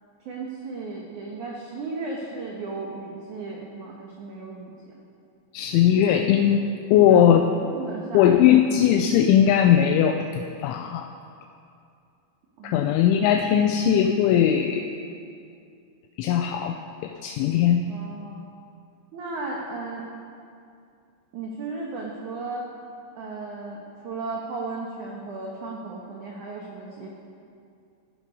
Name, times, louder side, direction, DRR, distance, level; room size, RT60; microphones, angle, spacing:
voice 1, 0.2-4.9 6.9-7.2 7.5-8.4 12.6-12.9 17.9-18.5 19.1-20.1 21.3-22.7 23.2-27.1, right 3 dB, 90° right, -2 dB, 1.7 m, -35 dB
voice 2, 5.5-7.4 8.1-11.1 12.6-14.9 16.2-17.8, left 9 dB, 85° left, 5 dB, 3.0 m, -19 dB
15.5 x 12.0 x 5.3 m, 2.4 s
omnidirectional pair, 5.5 m